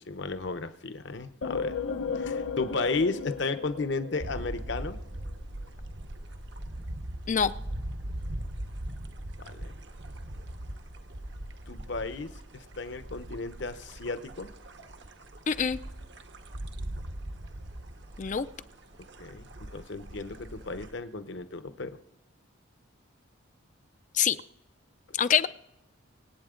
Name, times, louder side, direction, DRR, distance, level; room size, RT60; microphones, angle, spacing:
voice 1, 0.0-1.8 2.1-5.0 9.4-9.7 11.7-14.5 19.2-22.0, left 3 dB, 60° left, 11 dB, 0.9 m, -34 dB
sound 1, 1.4-5.0, left 5 dB, 85° left, 0.8 m, -35 dB
sound 2, 4.2-20.9, right 1 dB, 60° right, 1.0 m, -40 dB
voice 2, 15.5-15.8 18.2-18.5 24.1-24.4 25.2-25.5, left 7 dB, 40° left, 13 dB, 0.4 m, -24 dB
25.0 x 8.7 x 3.8 m, 0.89 s
head